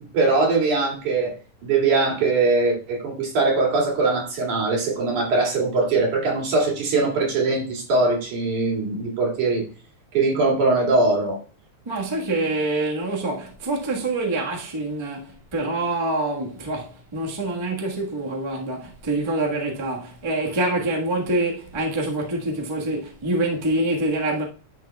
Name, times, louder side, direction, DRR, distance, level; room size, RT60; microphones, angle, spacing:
voice 1, 0.1-1.4 1.6-9.6 10.1-11.4, right 3 dB, 90° right, 4.0 m, -21 dB
voice 2, 11.8-24.4, right 2 dB, 20° right, 0.7 m, -26 dB
11.0 x 6.5 x 2.3 m
omnidirectional pair, 3.3 m